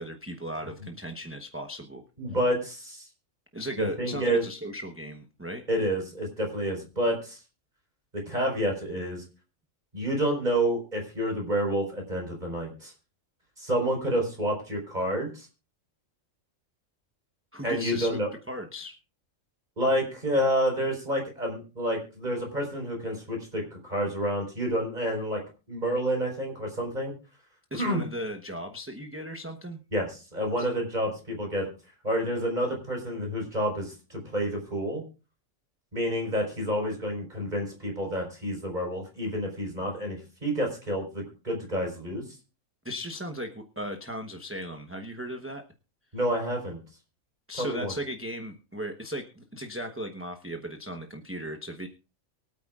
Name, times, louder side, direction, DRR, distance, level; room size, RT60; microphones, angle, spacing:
voice 1, 0.0-2.0 3.5-5.6 17.5-18.2 18.5-19.0 27.7-29.8 30.6-30.7 42.8-45.6 47.5-51.9, equal, 10° right, 4 dB, 0.9 m, -37 dB
voice 2, 2.2-3.1 3.8-4.4 5.7-7.4 8.3-9.2 9.9-12.9 13.6-15.5 17.6-18.3 19.8-25.4 25.7-27.1 27.7-28.0 29.9-31.7 32.0-35.0 35.9-42.2 46.1-46.8 47.6-47.9, equal, 35° right, 1 dB, 4.6 m, -29 dB
24.0 x 9.0 x 2.4 m, 0.33 s
omnidirectional pair, 1.4 m